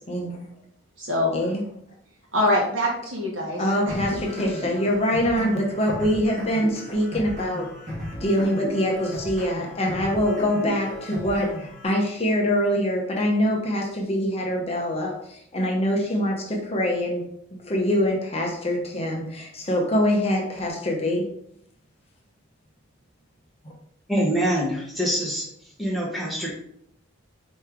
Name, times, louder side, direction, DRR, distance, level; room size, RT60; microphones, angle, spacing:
voice 1, 0.1-0.5 1.3-1.6 3.6-7.7 8.2-17.2 17.6-21.2, equal, 30° left, -1 dB, 0.8 m, -24 dB
voice 2, 1.0-1.5 2.3-3.9, left 1 dB, 60° right, -3 dB, 1.4 m, -24 dB
sound 1, 3.9-11.9, equal, 35° right, 1.4 m, -35 dB
voice 3, 24.1-25.5 25.8-26.5, equal, ahead, -5 dB, 0.9 m, -24 dB
4.4 x 3.1 x 3.6 m, 0.70 s
head